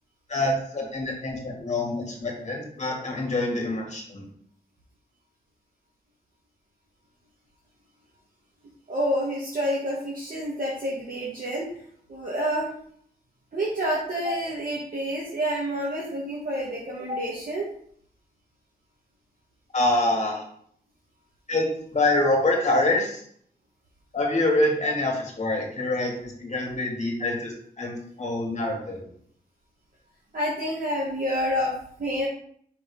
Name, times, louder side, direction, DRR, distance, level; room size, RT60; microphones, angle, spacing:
voice 1, 0.3-4.2 19.7-20.4 21.5-23.2 24.1-29.1, left 2 dB, 45° left, 0 dB, 2.0 m, -26 dB
voice 2, 8.9-11.7 12.1-12.8 13.5-17.7 30.3-32.3, equal, 60° right, -5 dB, 1.5 m, -28 dB
5.6 x 3.9 x 5.3 m, 0.63 s
wide cardioid pair, 125°, 16 cm